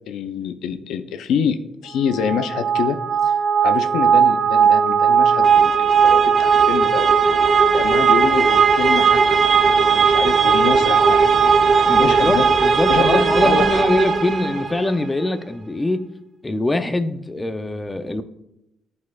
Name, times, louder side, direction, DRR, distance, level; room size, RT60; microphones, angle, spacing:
voice 1, 0.0-3.3 3.6-7.3 7.7-9.4 9.8-11.4 11.9-12.5 12.9-13.8, left 7 dB, 80° left, 9 dB, 0.4 m, -26 dB
sound 1, 2.1-14.9, right 6 dB, 45° right, 0.6 m, -17 dB
voice 2, 11.9-16.0 16.4-18.2, left 1 dB, 15° left, 10 dB, 0.5 m, -23 dB
11.0 x 4.2 x 2.3 m, 0.84 s
cardioid pair, 90°, 0 cm